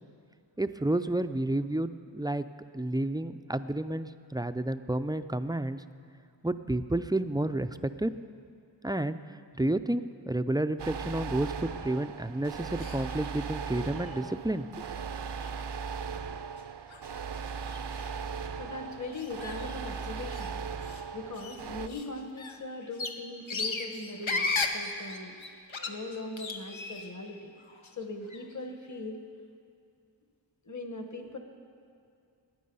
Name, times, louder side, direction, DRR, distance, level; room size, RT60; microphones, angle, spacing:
voice 1, 0.6-2.4 2.7-5.8 6.4-8.1 8.8-9.2 9.6-14.7, right 1 dB, 10° right, 11 dB, 0.3 m, -30 dB
sound 1, 10.8-21.9, right 6 dB, 65° right, 0.6 m, -38 dB
sound 2, 12.8-13.3 13.6-14.2 14.8-14.9 15.3-15.5 15.9-16.1 16.6-16.7 16.9-18.2 19.0-20.5 20.8-21.0 21.3-27.3 27.6-28.5, left 3 dB, 90° left, 0.9 m, -37 dB
voice 2, 18.6-20.6 21.1-25.4 25.9-27.5 27.9-29.2 30.6-31.4, left 2 dB, 40° left, 5 dB, 1.3 m, -40 dB
19.0 x 9.5 x 5.5 m, 2.4 s
wide cardioid pair, 50°, 45 cm